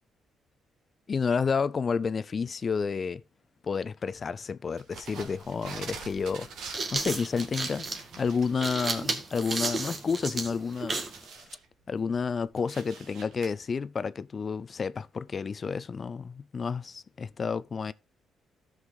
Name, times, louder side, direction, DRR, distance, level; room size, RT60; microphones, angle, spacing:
voice 1, 1.1-3.2 3.6-4.8 5.1-6.5 6.9-7.9 8.2-11.0 11.9-17.9, left 5 dB, 40° left, 0.5 m, -30 dB
sound 1, 4.8-8.7 9.1-9.2 9.5-11.7 12.1-13.5, right 5 dB, 80° right, 2.2 m, -45 dB
sound 2, 6.4-11.2, right 3 dB, 40° right, 1.7 m, -33 dB
13.0 x 6.5 x 4.0 m
cardioid pair, 90°, 0 cm